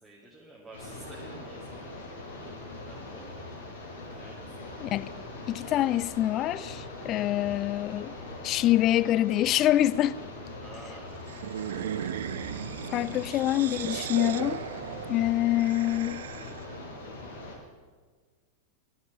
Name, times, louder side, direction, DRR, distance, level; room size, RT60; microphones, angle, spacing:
voice 1, 0.0-2.1 2.9-3.5 4.1-4.6 10.6-11.2 12.9-13.1, right 2 dB, 10° right, 2.1 m, -49 dB
sound 1, 0.7-17.5, left 2 dB, 65° left, 4.0 m, -42 dB
voice 2, 4.8-5.1 5.5-8.1 8.4-10.2 12.9-14.6 15.1-16.2, left 14 dB, 35° left, 0.3 m, -26 dB
sound 2, 11.3-16.7, right 10 dB, 60° right, 0.4 m, -37 dB
10.0 x 9.4 x 8.9 m
figure-of-eight pair, 90°, 0 cm